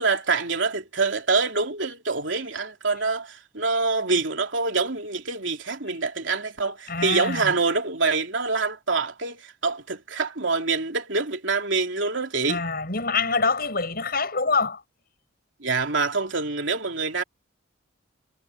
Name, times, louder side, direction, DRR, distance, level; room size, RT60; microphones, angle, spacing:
voice 1, 0.0-12.6 15.6-17.2, right 4 dB, 65° right, 3.2 m, -25 dB
voice 2, 6.9-7.5 12.5-14.8, left 4 dB, 50° left, 6.7 m, -25 dB
head